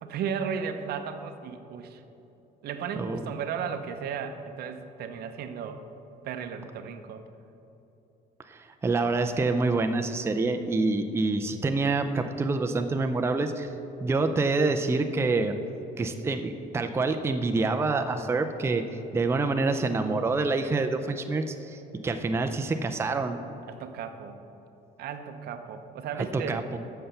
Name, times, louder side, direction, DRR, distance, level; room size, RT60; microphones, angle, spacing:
voice 1, 0.0-2.0 2.6-5.8 6.2-7.2 22.2-22.5 23.7-24.4 25.0-26.6, right 7 dB, 65° right, 8 dB, 0.7 m, -35 dB
voice 2, 8.5-13.7 14.0-15.5 16.0-18.8 19.1-23.4 26.3-26.8, right 3 dB, 15° right, 6 dB, 0.4 m, -27 dB
7.7 x 5.6 x 6.7 m, 2.9 s
cardioid pair, 110°, 17 cm